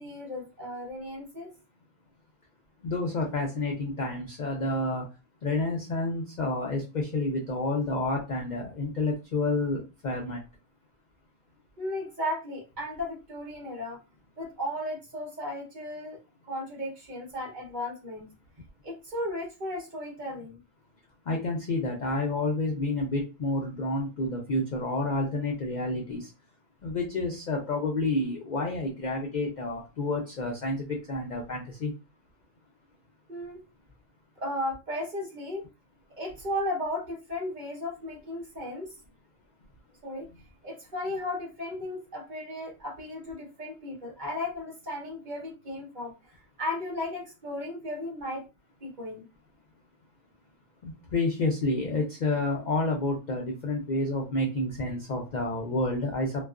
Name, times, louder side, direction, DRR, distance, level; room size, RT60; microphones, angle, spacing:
voice 1, 0.0-1.5 11.8-14.0 14.4-16.2 16.5-18.3 18.8-20.6 33.3-33.6 34.4-35.7 36.2-38.9 40.0-40.3 40.6-46.1 46.6-48.4 48.8-49.2, left 1 dB, 45° right, -1 dB, 0.8 m, -35 dB
voice 2, 2.8-5.0 5.4-10.4 21.3-26.3 26.8-31.9 50.8-56.4, left 2 dB, 70° left, 0 dB, 0.4 m, -29 dB
2.3 x 2.2 x 2.3 m, 0.29 s
omnidirectional pair, 1.3 m